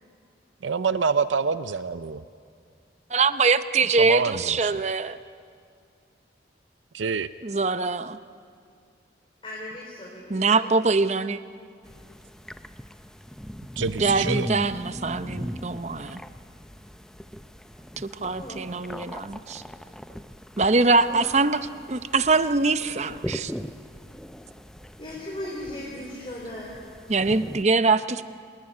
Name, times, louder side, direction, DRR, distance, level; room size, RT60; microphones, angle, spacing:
voice 1, 0.6-2.2 3.9-4.8 6.9-7.3 13.8-14.5, right 5 dB, 85° right, 13 dB, 0.6 m, -26 dB
voice 2, 3.1-5.2 7.4-8.2 10.3-11.4 14.0-16.2 18.0-19.6 20.6-23.5 27.1-28.2, right 3 dB, 35° right, 12 dB, 0.7 m, -23 dB
voice 3, 9.4-10.8 18.4-18.7 21.1-21.3 25.0-26.7, left 1 dB, 25° left, -3 dB, 3.8 m, -37 dB
sound 1, 11.8-27.6, equal, 5° left, 0.6 m, -39 dB
27.5 x 19.0 x 9.8 m, 2.3 s
head